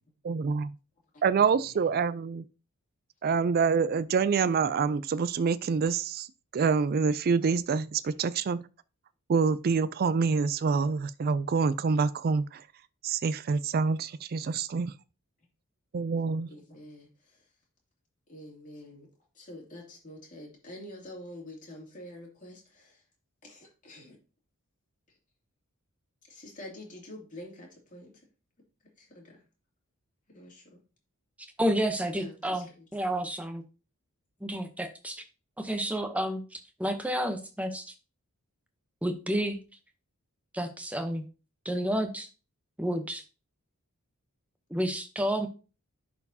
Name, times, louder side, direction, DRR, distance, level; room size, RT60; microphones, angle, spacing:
voice 1, 0.2-0.7 1.2-2.4 3.2-6.3 6.5-8.6 9.3-12.6 13.0-14.9 15.9-16.5, right 5 dB, 45° right, 0.3 m, -26 dB
voice 2, 16.5-17.4 18.3-19.1 19.3-23.0 23.4-24.2 26.3-28.1 29.0-29.4 30.3-30.8 32.1-32.6, left 1 dB, 35° left, 2.6 m, -46 dB
voice 3, 31.6-33.6 34.4-35.2 35.6-37.9 39.0-39.6 40.5-41.3 41.6-42.3 42.8-43.2 44.7-45.5, equal, 5° right, 0.8 m, -30 dB
11.0 x 4.3 x 2.8 m
head